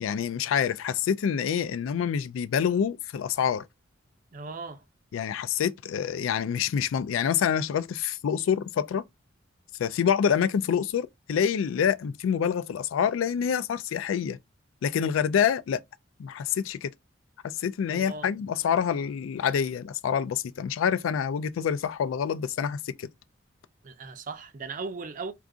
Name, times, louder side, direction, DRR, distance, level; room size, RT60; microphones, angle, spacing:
voice 1, 0.0-3.7 5.1-9.0 9.8-14.4 14.8-15.8 16.2-16.9 17.4-23.1, left 8 dB, 85° left, 0.3 m, -27 dB
voice 2, 4.3-4.8 17.9-18.3 23.8-25.3, right 4 dB, 45° right, 0.5 m, -37 dB
2.4 x 2.4 x 3.7 m
head